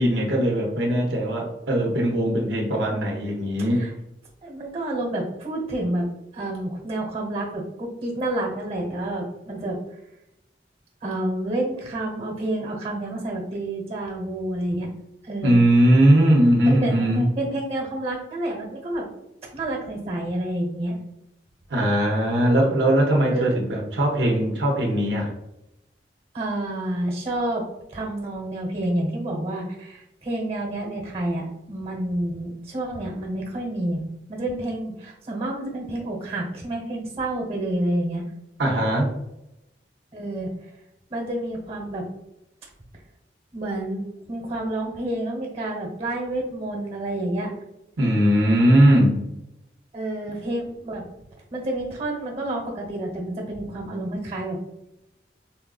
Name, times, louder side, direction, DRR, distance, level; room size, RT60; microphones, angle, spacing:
voice 1, 0.0-3.8 15.4-17.3 21.7-25.3 38.6-39.1 48.0-49.3, right 1 dB, 85° right, -1 dB, 0.7 m, -19 dB
voice 2, 4.4-6.1 6.3-9.8 11.0-14.9 15.2-15.6 16.6-19.1 19.5-21.0 23.3-23.6 26.3-27.6 27.9-34.0 34.3-38.3 40.1-40.5 41.1-42.1 43.5-44.0 44.3-47.5 49.9-51.0 51.5-54.6, right 1 dB, 35° right, -1 dB, 1.0 m, -29 dB
4.1 x 2.4 x 2.3 m, 0.86 s
head